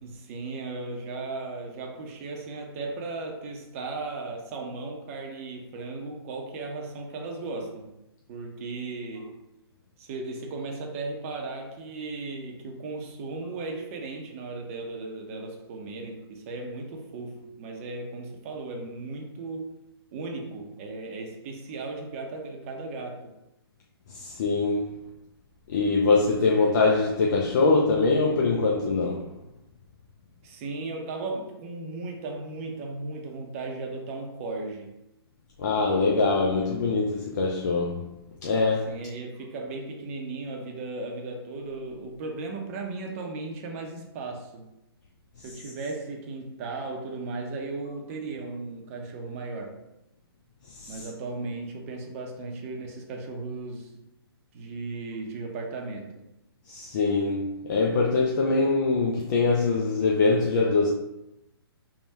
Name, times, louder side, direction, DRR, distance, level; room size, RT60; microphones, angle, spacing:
voice 1, 0.0-8.0 8.3-9.4 10.0-19.7 20.1-23.3 30.4-34.9 38.9-44.7 45.4-49.8 50.9-54.0 54.5-56.2, right 3 dB, 35° right, 0.7 m, -36 dB
voice 2, 24.1-25.0 25.7-29.3 35.6-38.1 38.4-38.9 45.4-45.5 50.6-51.1 56.7-60.9, left 3 dB, 45° left, 0.5 m, -23 dB
3.6 x 2.3 x 4.1 m
hypercardioid pair, 145°, 13 cm